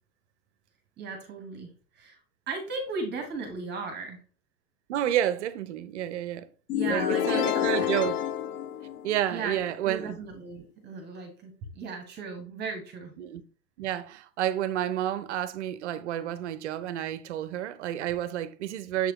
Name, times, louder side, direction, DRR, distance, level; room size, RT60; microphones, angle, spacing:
voice 1, 1.0-1.7 1.9-2.2 2.5-4.2 6.7-7.9 9.3-13.1, right 4 dB, 20° right, 1.1 m, -36 dB
voice 2, 4.9-6.5 6.8-8.2 9.0-10.2 13.2-13.4 13.8-19.1, right 11 dB, 45° right, 0.6 m, -30 dB
sound 1, 6.7-9.5, left 11 dB, 60° left, 0.5 m, -28 dB
6.9 x 4.7 x 3.0 m
figure-of-eight pair, 100°, 50 cm